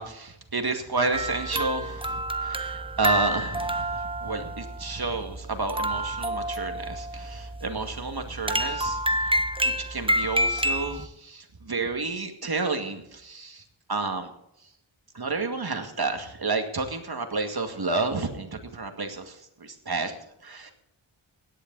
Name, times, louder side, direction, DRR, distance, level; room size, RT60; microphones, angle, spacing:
voice 1, 0.0-9.3 9.6-13.6 13.9-14.3 15.1-20.1 20.4-20.7, right 3 dB, 50° right, 5 dB, 2.2 m, -30 dB
sound 1, 1.1-11.1, right 1 dB, 10° right, 0.9 m, -29 dB
17.0 x 10.5 x 4.1 m, 0.79 s
wide cardioid pair, 70°, 48 cm